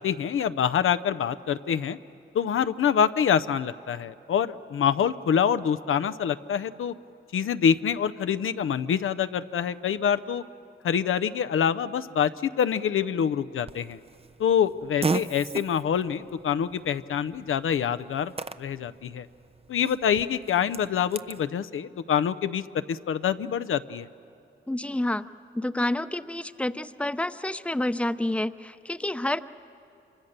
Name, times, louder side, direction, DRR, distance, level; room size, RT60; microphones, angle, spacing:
voice 1, 0.0-2.0 2.3-6.9 7.3-10.4 10.8-14.0 14.4-19.3 19.7-22.6 22.9-24.1, left 8 dB, 85° left, 12 dB, 0.6 m, -26 dB
Fart, 13.7-21.4, right 4 dB, 30° right, 0.6 m, -37 dB
voice 2, 24.7-25.2 25.5-29.4, left 1 dB, 5° left, 12 dB, 0.7 m, -28 dB
26.5 x 24.5 x 6.6 m, 2.7 s
cardioid pair, 55°, 21 cm